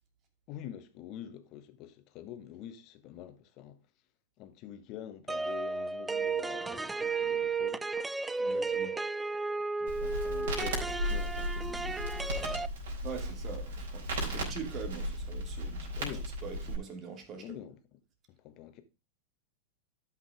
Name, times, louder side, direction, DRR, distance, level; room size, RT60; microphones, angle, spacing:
voice 1, 0.5-3.9 4.4-8.0 9.8-12.1 12.4-12.7 16.0-16.3 17.3-17.8 18.3-18.8, left 11 dB, 45° left, 1.5 m, -46 dB
sound 1, 5.3-12.7, right 4 dB, 10° right, 0.4 m, -33 dB
voice 2, 8.4-9.0 13.0-16.1 16.4-17.6, right 6 dB, 35° right, 2.6 m, -43 dB
Crackle, 9.9-16.7, equal, 65° right, 4.2 m, -36 dB
12.5 x 5.8 x 3.5 m
hypercardioid pair, 95°, 0 cm